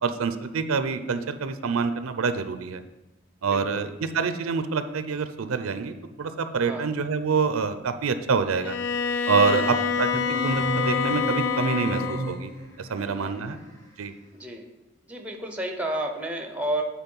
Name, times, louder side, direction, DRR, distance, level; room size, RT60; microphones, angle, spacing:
voice 1, 0.0-2.8 3.4-8.8 9.3-12.5 12.8-13.6 14.0-14.1, right 5 dB, 90° right, 10 dB, 0.5 m, -26 dB
voice 2, 3.4-3.8 6.7-6.9 9.4-9.6 12.9-13.6 14.4-14.6 15.0-16.8, right 1 dB, 5° right, 4 dB, 0.7 m, -32 dB
Bowed string instrument, 8.6-12.3, left 6 dB, 60° left, 0.3 m, -27 dB
sound 1, 10.1-12.8, equal, 15° left, 1.0 m, -31 dB
8.1 x 4.1 x 5.4 m, 1.0 s
head